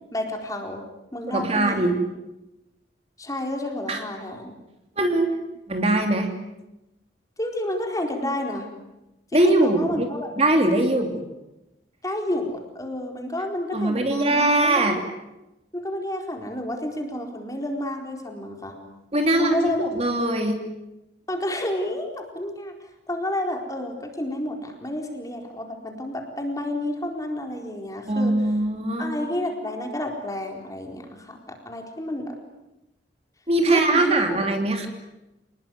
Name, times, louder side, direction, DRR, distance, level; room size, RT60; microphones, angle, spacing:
voice 1, 0.1-0.8 1.1-1.9 3.2-4.6 7.4-8.7 9.3-10.3 12.0-15.0 15.7-18.8 19.4-19.9 21.3-28.3 29.0-32.4 33.7-34.5, left 1 dB, 20° left, 3 dB, 4.3 m, -30 dB
voice 2, 1.3-2.0 3.9-4.0 5.0-5.3 5.7-6.3 9.3-10.1 10.4-11.2 13.7-15.0 19.1-19.6 19.9-20.6 28.1-29.1 33.5-34.9, right 2 dB, 35° right, 4 dB, 3.1 m, -21 dB
28.0 x 20.5 x 9.6 m, 0.95 s
head